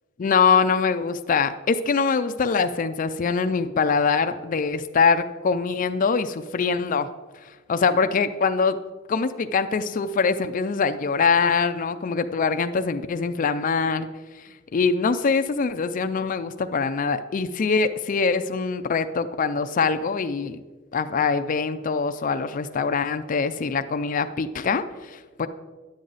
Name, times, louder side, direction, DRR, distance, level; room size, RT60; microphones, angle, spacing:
voice 1, 0.2-7.1 7.7-8.8 9.1-14.1 14.7-20.6 20.9-25.5, left 5 dB, 40° left, 9 dB, 0.4 m, -23 dB
10.5 x 7.6 x 4.0 m, 1.3 s
head